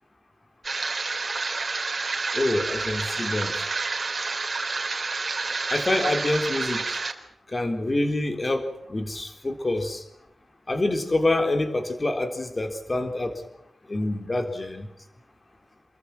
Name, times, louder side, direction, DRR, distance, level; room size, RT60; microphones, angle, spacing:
sound 1, 0.6-7.1, right 3 dB, 35° right, 3.7 m, -29 dB
voice 1, 2.3-3.5 5.7-7.0 7.5-10.0 10.7-13.4 13.9-14.9, left 2 dB, 25° left, 6 dB, 3.9 m, -26 dB
29.0 x 23.0 x 6.2 m, 0.79 s
wide cardioid pair, 150°, 0 cm